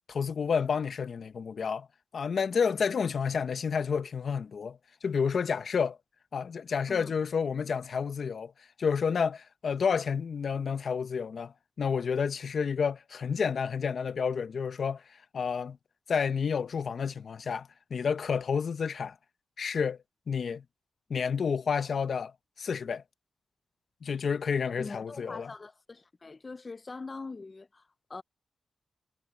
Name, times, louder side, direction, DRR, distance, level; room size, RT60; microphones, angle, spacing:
voice 1, 0.1-1.9 2.1-4.8 5.0-6.0 6.3-8.5 8.8-15.0 15.3-15.8 16.1-19.1 19.6-20.0 20.3-20.6 21.1-22.3 22.6-23.0 24.0-25.5, left 6 dB, 70° left, 0.9 m, -30 dB
voice 2, 24.8-28.2, left 3 dB, 40° left, 0.6 m, -43 dB
cardioid pair, 60°, 0 cm